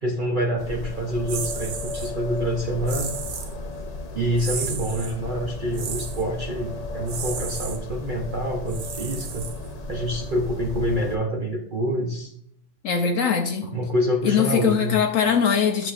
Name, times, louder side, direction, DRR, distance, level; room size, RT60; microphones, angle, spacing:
voice 1, 0.0-3.1 4.1-9.5 9.9-12.3 13.6-15.0, equal, 40° right, 0.9 m, -26 dB
sound 1, 0.6-11.2, left 2 dB, 35° left, 0.9 m, -34 dB
sound 2, 1.3-2.1 2.9-3.5 4.4-5.1 5.7-6.2 7.1-7.8 8.7-9.8, right 6 dB, 80° right, 1.3 m, -33 dB
voice 2, 12.8-13.7 14.2-15.9, left 7 dB, 70° left, 1.1 m, -21 dB
11.0 x 6.5 x 2.5 m
omnidirectional pair, 1.4 m